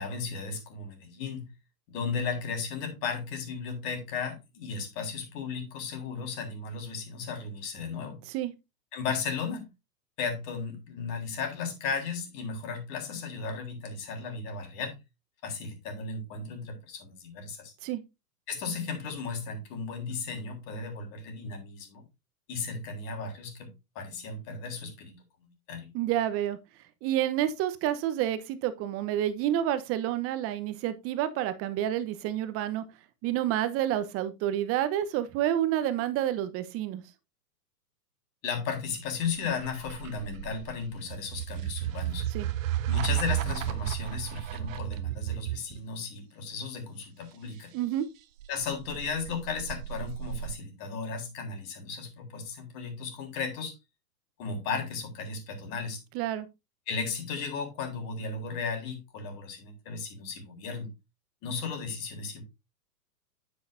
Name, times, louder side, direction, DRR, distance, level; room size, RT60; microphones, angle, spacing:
voice 1, 0.0-1.5 1.9-8.2 8.9-9.7 10.2-15.0 15.4-17.7 18.5-22.0 22.5-25.9 38.4-42.3 42.9-47.7 48.5-53.7 54.4-56.0 56.9-60.9 61.4-62.5, left 5 dB, 40° left, 3.8 m, -35 dB
voice 2, 25.9-26.6 27.0-32.8 33.2-37.0 42.3-42.5 47.7-48.1 56.1-56.5, right 12 dB, 30° right, 1.0 m, -29 dB
sound 1, 39.1-45.8 48.4-50.5, right 13 dB, 50° right, 1.1 m, -33 dB
9.3 x 8.6 x 2.7 m
hypercardioid pair, 110°, 49 cm